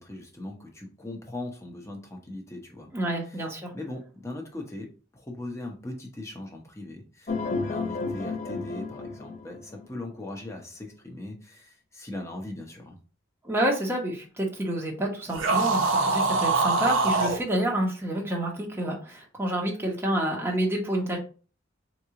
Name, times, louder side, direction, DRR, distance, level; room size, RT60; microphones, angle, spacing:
voice 1, 0.0-2.9 3.3-3.4 3.7-13.0, left 1 dB, 15° left, 1 dB, 0.9 m, -39 dB
voice 2, 2.9-3.7 13.4-21.2, right 1 dB, 10° right, -1 dB, 1.0 m, -28 dB
sound 1, 7.3-10.1, left 4 dB, 40° left, 0.5 m, -32 dB
sound 2, 15.3-17.4, right 3 dB, 85° right, 0.9 m, -23 dB
3.9 x 3.1 x 3.7 m, 0.37 s
head